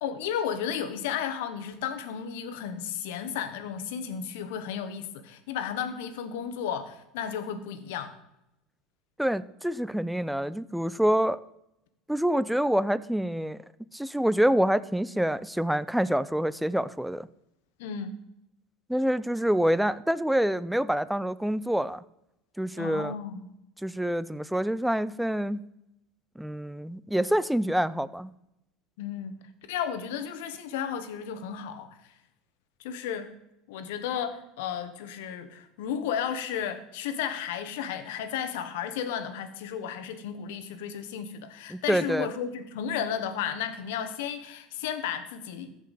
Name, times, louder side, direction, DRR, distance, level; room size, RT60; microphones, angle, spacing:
voice 1, 0.0-8.1 17.8-18.1 22.7-23.5 29.0-29.3 29.7-32.0 32.8-33.3 33.7-45.8, left 8 dB, 85° left, 10 dB, 1.1 m, -33 dB
voice 2, 9.2-11.4 12.1-13.6 13.9-17.3 18.9-22.0 22.6-23.2 23.8-25.7 26.4-28.3 41.7-42.3, equal, ahead, 17 dB, 0.3 m, -26 dB
14.0 x 5.3 x 4.1 m, 0.86 s
supercardioid pair, 125°, 0 cm